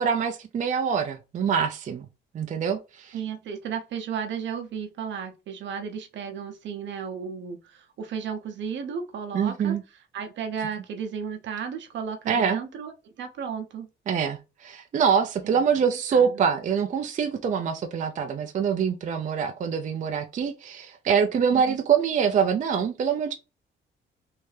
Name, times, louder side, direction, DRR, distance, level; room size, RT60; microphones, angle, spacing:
voice 1, 0.0-2.1 2.3-3.2 9.3-9.8 12.3-12.6 14.1-23.4, right 7 dB, 40° right, 0.4 m, -25 dB
voice 2, 3.1-9.8 10.1-12.9 13.2-13.9 15.4-15.6 16.1-16.4 21.5-21.8, right 7 dB, 65° right, 0.7 m, -34 dB
3.3 x 2.7 x 3.2 m
cardioid pair, 90°, 20 cm